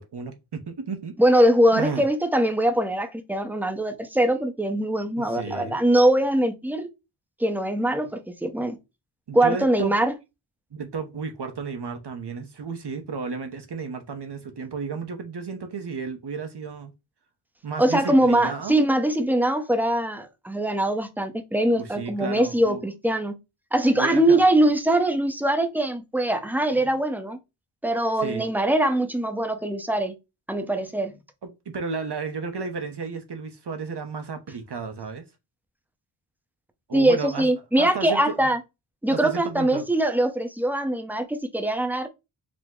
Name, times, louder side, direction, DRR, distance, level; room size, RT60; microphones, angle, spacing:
voice 1, 0.0-1.2 1.7-2.1 5.2-5.8 9.3-9.9 10.7-16.9 17.6-18.8 21.7-22.8 23.9-24.4 28.2-28.5 31.4-35.2 36.9-37.5 37.8-38.5 39.1-39.8, right 5 dB, 55° right, 0.8 m, -33 dB
voice 2, 1.2-6.9 7.4-8.8 9.3-10.1 17.8-23.4 23.7-27.4 27.8-30.1 30.5-31.1 36.9-38.6 39.0-42.1, right 1 dB, 5° right, 0.7 m, -22 dB
5.0 x 2.1 x 3.6 m
wide cardioid pair, 70°, 48 cm